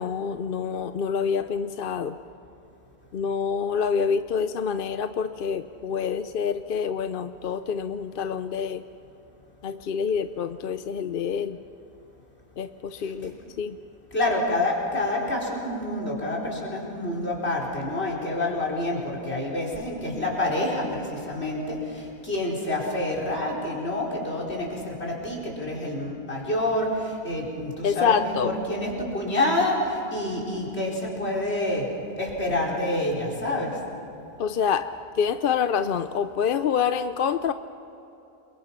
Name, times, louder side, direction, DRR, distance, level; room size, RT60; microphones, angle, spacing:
voice 1, 0.0-2.2 3.1-8.9 9.6-11.6 12.6-13.8 27.8-28.5 34.4-37.5, left 6 dB, 60° left, 10 dB, 0.8 m, -27 dB
voice 2, 14.1-31.9 32.2-33.7, left 1 dB, 85° left, -1 dB, 4.9 m, -28 dB
28.0 x 23.0 x 5.8 m, 2.9 s
omnidirectional pair, 1.1 m